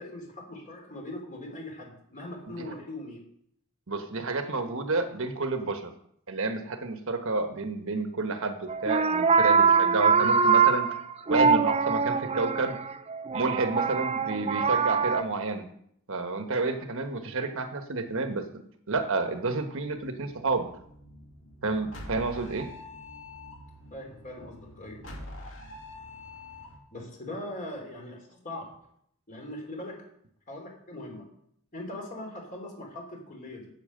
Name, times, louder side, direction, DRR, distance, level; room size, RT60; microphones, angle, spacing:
voice 1, 0.0-3.2 23.9-25.0 26.9-28.7 29.3-30.0 30.5-31.3 31.7-33.7, left 1 dB, 35° left, 1 dB, 3.1 m, -40 dB
voice 2, 3.9-5.9 6.3-10.9 11.3-12.8 13.3-15.7 16.1-18.5 18.9-20.7 21.6-22.7, right 3 dB, 65° right, 7 dB, 1.2 m, -30 dB
sound 1, 8.7-15.2, right 5 dB, 30° right, 0.5 m, -23 dB
sound 2, 20.1-26.8, left 1 dB, 60° left, 2.5 m, -45 dB
8.7 x 8.3 x 6.6 m, 0.69 s
head